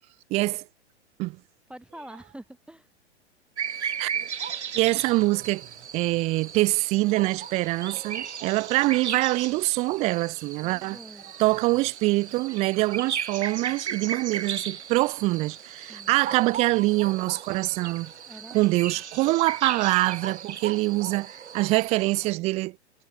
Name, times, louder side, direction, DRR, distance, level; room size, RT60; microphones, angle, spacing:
voice 1, 0.3-0.6 1.2-1.4 3.8-4.1 4.7-5.7 5.9-11.0 11.4-18.1 18.5-22.8, right 21 dB, 20° right, 0.4 m, -24 dB
voice 2, 1.7-2.9 10.6-11.3 15.9-16.2 18.3-19.0, right 1 dB, 5° right, 1.6 m, -46 dB
sound 1, 3.6-22.3, right 7 dB, 75° right, 1.8 m, -36 dB
figure-of-eight pair, 105°, 34 cm